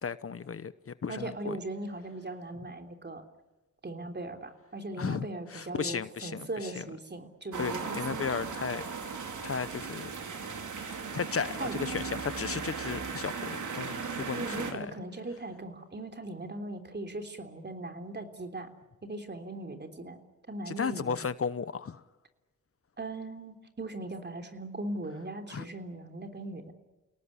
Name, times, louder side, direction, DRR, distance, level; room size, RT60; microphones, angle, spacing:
voice 1, 0.0-1.6 5.0-6.8 7.6-8.9 9.4-10.1 10.9-14.9 20.7-22.0 25.5-25.6, left 6 dB, 50° left, 0.9 m, -35 dB
voice 2, 1.1-3.2 3.8-8.0 11.6-11.7 14.4-18.7 19.0-20.2 20.5-21.2 23.0-26.7, right 2 dB, 35° right, 3.5 m, -39 dB
sound 1, 7.5-14.7, right 5 dB, 80° right, 3.6 m, -37 dB
30.0 x 18.5 x 9.9 m
wide cardioid pair, 90°, 30 cm